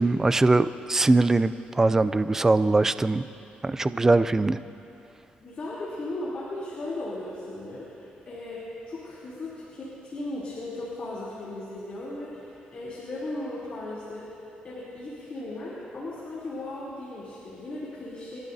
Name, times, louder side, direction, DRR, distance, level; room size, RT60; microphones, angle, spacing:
voice 1, 0.0-3.3 3.6-4.6, right 2 dB, 15° right, 14 dB, 0.3 m, -21 dB
voice 2, 5.4-14.3 14.6-18.4, left 2 dB, 40° left, -8 dB, 3.1 m, -36 dB
30.0 x 12.5 x 2.7 m, 2.8 s
cardioid pair, 135°, 3 cm